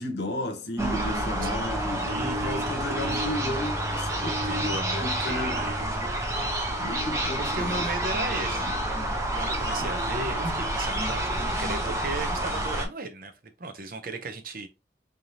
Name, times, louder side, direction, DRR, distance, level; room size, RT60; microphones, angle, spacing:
voice 1, 0.0-5.6 6.8-7.9, left 1 dB, 70° left, 1.0 m, -34 dB
sound 1, 0.8-12.9, right 1 dB, 15° right, 0.8 m, -28 dB
voice 2, 1.8-3.4 4.4-5.8 6.1-6.3 7.4-8.8 9.3-13.3 13.6-14.7, right 3 dB, 50° right, 0.7 m, -36 dB
4.0 x 3.4 x 2.8 m
head